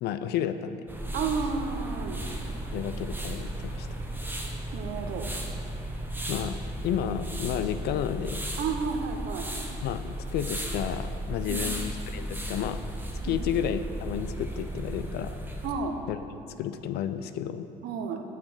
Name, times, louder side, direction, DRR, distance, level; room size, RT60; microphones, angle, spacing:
voice 1, 0.0-0.9 2.7-3.9 6.3-8.4 9.8-12.8 13.2-15.4 16.1-16.2 16.6-17.7, left 9 dB, 75° left, 11 dB, 0.5 m, -31 dB
sound 1, 0.9-15.7, right 1 dB, 10° right, 1.0 m, -35 dB
voice 2, 1.1-2.2 4.7-5.3 8.6-9.4 11.5-11.7 13.2-13.4 15.6-16.0 17.8-18.2, right 5 dB, 70° right, 4 dB, 0.9 m, -31 dB
6.5 x 5.9 x 7.2 m, 2.6 s
cardioid pair, 110°, 17 cm